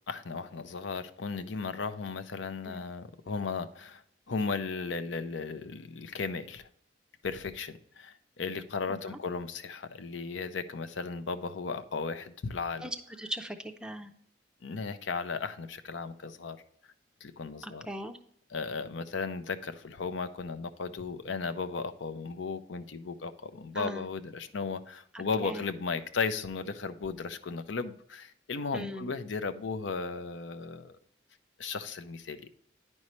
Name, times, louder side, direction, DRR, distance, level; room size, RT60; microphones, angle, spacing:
voice 1, 0.1-4.0 4.3-6.7 7.2-12.9 14.6-16.6 17.2-17.9 18.5-31.0 31.6-32.5, left 4 dB, 80° left, 0.6 m, -35 dB
voice 2, 12.8-14.1 17.6-18.2 23.7-24.1 25.1-25.6 28.7-29.1, equal, 5° right, 0.4 m, -39 dB
9.6 x 5.4 x 3.1 m
head